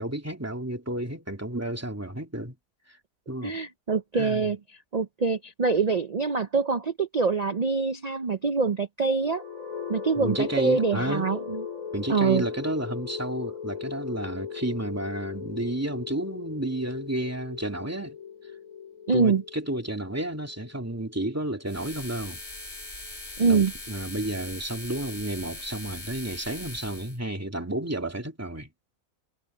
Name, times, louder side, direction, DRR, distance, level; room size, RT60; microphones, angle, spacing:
voice 1, 0.0-2.5 3.3-3.5 4.1-4.5 10.2-11.4 11.9-18.2 19.1-22.4 23.4-28.7, right 1 dB, 10° right, 2.5 m, -31 dB
voice 2, 3.4-4.6 4.9-9.4 9.9-11.6 12.1-12.4 19.1-19.4 23.4-23.7, right 4 dB, 75° right, 0.3 m, -24 dB
sound 1, 9.2-23.1, left 7 dB, 60° left, 5.0 m, -39 dB
sound 2, 21.7-27.2, left 2 dB, 45° left, 3.9 m, -40 dB
omnidirectional pair, 1.6 m